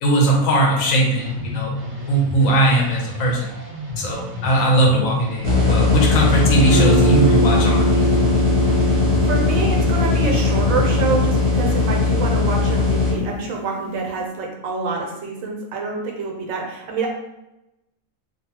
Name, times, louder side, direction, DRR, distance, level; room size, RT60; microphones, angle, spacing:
voice 1, 0.0-1.7 2.1-3.4 4.0-8.1, right 1 dB, 85° left, -1 dB, 1.1 m, -19 dB
sound 1, 1.2-11.2, left 1 dB, 15° right, 0.5 m, -32 dB
sound 2, 5.4-13.1, left 4 dB, 30° left, 1.1 m, -18 dB
Guitar, 6.5-14.2, right 3 dB, 60° left, 1.0 m, -25 dB
voice 2, 9.2-17.1, right 4 dB, 85° right, 0 dB, 1.1 m, -27 dB
2.7 x 2.3 x 2.8 m, 0.92 s
omnidirectional pair, 1.4 m